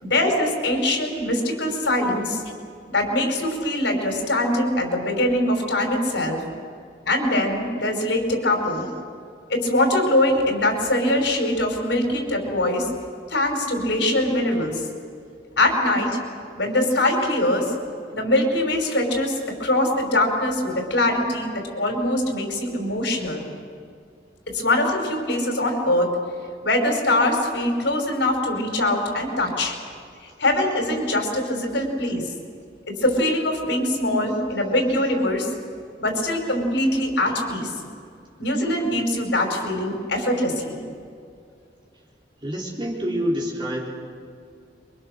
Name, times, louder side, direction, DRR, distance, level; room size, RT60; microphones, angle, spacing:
voice 1, 0.0-2.4 2.9-6.4 7.1-8.9 9.5-12.9 13.3-14.8 15.6-16.2 16.6-17.7 18.1-23.4 24.5-26.1 26.6-29.7 30.4-32.3 32.9-35.5 36.0-37.7 38.4-40.8, left 1 dB, 80° left, 3 dB, 5.4 m, -22 dB
voice 2, 42.4-43.9, equal, 25° right, -4 dB, 4.3 m, -27 dB
28.0 x 24.5 x 6.7 m, 2.3 s
head